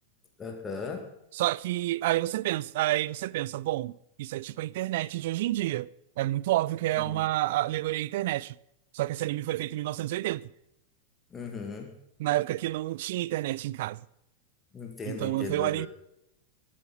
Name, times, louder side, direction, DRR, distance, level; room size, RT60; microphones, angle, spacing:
voice 1, 0.4-1.1 7.1-7.3 11.3-12.0 14.7-15.9, left 4 dB, 20° left, 2.1 m, -37 dB
voice 2, 1.4-5.9 6.2-8.5 8.9-10.5 12.2-14.0 15.1-15.9, right 16 dB, 55° right, 0.4 m, -29 dB
20.5 x 8.6 x 5.3 m
figure-of-eight pair, 90°, 0 cm